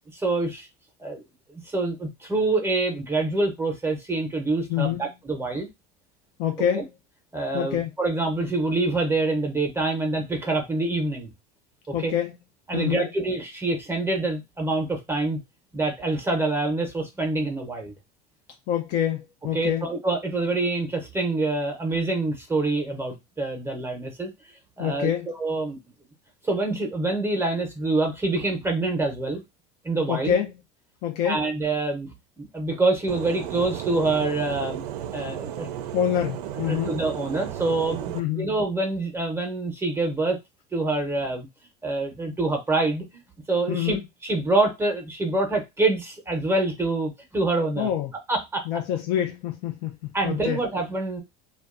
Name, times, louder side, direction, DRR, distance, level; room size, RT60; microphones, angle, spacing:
voice 1, 0.2-0.7 1.0-1.2 1.6-5.7 6.7-6.8 7.3-11.3 12.0-12.1 12.7-15.4 15.7-17.9 19.5-24.3 24.8-25.8 26.4-29.4 29.8-30.3 31.2-34.8 35.1-35.7 36.7-40.4 40.7-41.5 41.8-43.2 43.5-44.0 44.2-47.9 48.3-48.6 50.1-51.2, right 2 dB, 15° right, 0.6 m, -26 dB
voice 2, 4.7-5.0 6.4-6.9 7.5-7.9 11.9-12.3 12.7-13.0 18.7-19.8 24.8-25.3 30.1-30.6 31.0-31.4 35.9-36.9 38.1-38.5 43.7-44.0 47.8-48.1 48.7-49.9 50.2-50.6, left 10 dB, 60° left, 0.5 m, -26 dB
sound 1, 33.1-38.2, right 11 dB, 85° right, 0.4 m, -34 dB
2.5 x 2.2 x 2.4 m
supercardioid pair, 100°, 19 cm